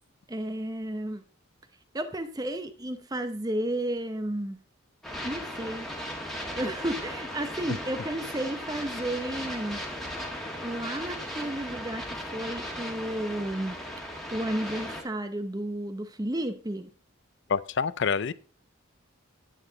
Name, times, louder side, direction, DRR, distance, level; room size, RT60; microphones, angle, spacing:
voice 1, 0.3-1.2 1.9-4.6 5.2-5.9 6.5-9.8 10.6-13.8 14.3-16.9, right 1 dB, 20° right, 9 dB, 0.7 m, -32 dB
sound 1, 5.0-15.0, equal, ahead, 1.6 m, -37 dB
voice 2, 17.5-18.3, left 6 dB, 55° left, 18 dB, 0.4 m, -27 dB
10.0 x 9.0 x 3.8 m, 0.39 s
head